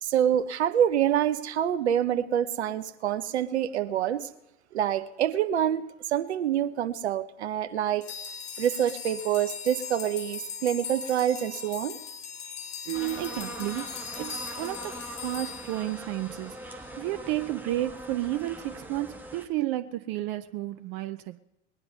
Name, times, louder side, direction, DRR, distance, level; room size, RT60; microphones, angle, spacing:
voice 1, 0.0-4.3 4.7-8.0 8.6-12.0, right 10 dB, 65° right, 11 dB, 1.0 m, -26 dB
sound 1, 8.0-16.5, left 6 dB, 50° left, 3.7 m, -40 dB
sound 2, 12.9-19.5, right 1 dB, 5° right, 1.5 m, -42 dB
voice 2, 12.9-21.4, right 15 dB, 40° right, 13 dB, 0.6 m, -32 dB
20.5 x 9.8 x 5.5 m, 0.87 s
figure-of-eight pair, 80°, 37 cm